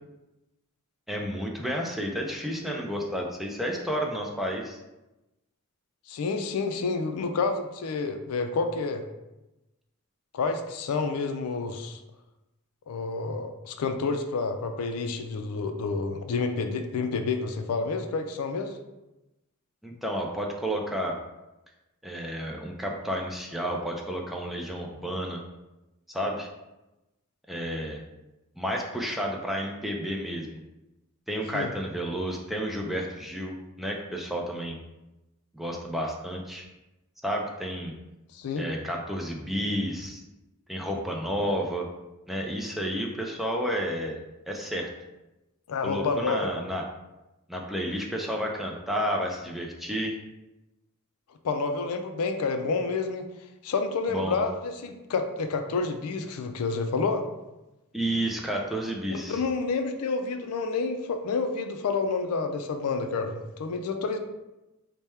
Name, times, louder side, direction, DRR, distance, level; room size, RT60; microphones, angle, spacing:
voice 1, 1.1-4.8 19.8-21.2 22.0-25.4 26.1-26.5 27.5-28.0 28.6-30.6 31.3-34.8 35.5-36.6 37.2-37.9 38.6-40.2 40.7-41.9 42.3-44.2 44.5-44.9 45.8-46.8 47.5-50.2 54.1-54.4 57.9-59.4, equal, ahead, 0 dB, 0.4 m, -31 dB
voice 2, 6.1-9.0 10.3-12.0 12.9-18.8 31.5-31.7 38.3-38.7 45.7-46.5 51.4-53.3 53.6-57.2 59.1-64.2, left 4 dB, 70° left, 6 dB, 0.4 m, -29 dB
3.4 x 2.1 x 4.2 m, 0.98 s
head